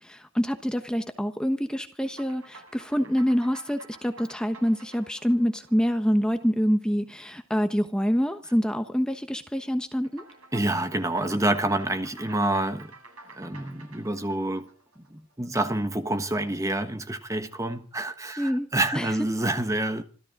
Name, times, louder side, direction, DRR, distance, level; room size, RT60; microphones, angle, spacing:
voice 1, 0.0-10.2 18.4-19.1, equal, 5° left, 1.1 m, -26 dB
sound 1, 2.0-6.7 10.0-15.5, right 3 dB, 85° right, 7.8 m, -50 dB
voice 2, 10.5-12.9 13.3-14.7 15.0-20.0, right 1 dB, 15° right, 1.3 m, -27 dB
26.0 x 14.0 x 3.8 m
head